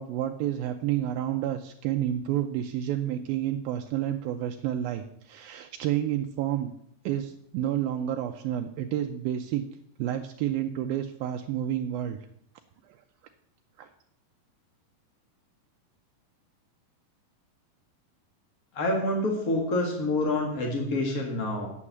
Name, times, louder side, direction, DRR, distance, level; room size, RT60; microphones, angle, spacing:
voice 1, 0.0-6.7 7.1-9.6 10.0-12.2 13.8-13.9, right 11 dB, 80° right, 5 dB, 2.3 m, -30 dB
voice 2, 18.7-21.7, left 2 dB, 45° left, 0 dB, 1.1 m, -27 dB
9.8 x 7.5 x 7.3 m, 0.74 s
omnidirectional pair, 4.5 m